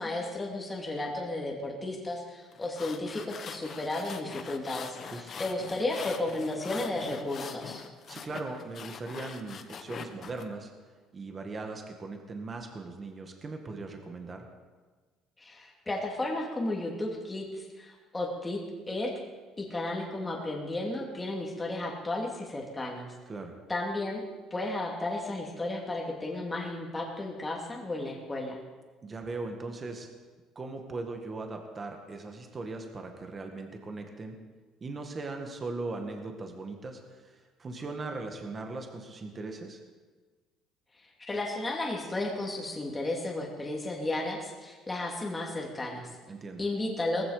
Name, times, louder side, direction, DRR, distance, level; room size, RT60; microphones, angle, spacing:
voice 1, 0.0-7.8 15.4-18.6 18.9-19.1 19.6-23.1 23.7-24.2 24.5-28.6 41.2-46.1 46.6-47.2, left 2 dB, 15° left, -1 dB, 2.7 m, -33 dB
sound 1, 2.5-10.4, left 6 dB, 40° left, 1.2 m, -43 dB
voice 2, 5.0-5.4 8.1-10.7 11.1-14.5 23.3-23.6 29.0-30.1 30.6-34.4 34.8-39.8 46.3-46.6, right 3 dB, 25° right, 4 dB, 1.9 m, -39 dB
18.5 x 15.5 x 5.1 m, 1.4 s
cardioid pair, 145°, 0 cm